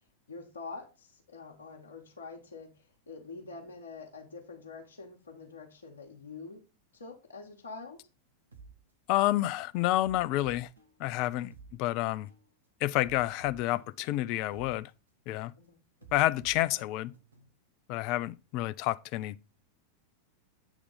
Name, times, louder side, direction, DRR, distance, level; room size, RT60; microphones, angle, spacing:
voice 1, 0.3-2.7 3.1-6.6 6.9-8.0 15.6-15.8, left 4 dB, 70° left, 1.2 m, -45 dB
sound 1, 8.5-8.7 9.3-9.5 10.0-11.7 12.3-12.5 13.0-14.7 15.3-15.5 16.0-17.5, right 4 dB, 75° right, 1.1 m, -53 dB
voice 2, 9.1-10.7 11.0-11.5 11.8-12.3 12.8-14.9 15.3-15.5 16.1-17.1 17.9-19.4, left 16 dB, 45° left, 0.4 m, -29 dB
8.1 x 3.6 x 5.4 m
figure-of-eight pair, 90°, 0 cm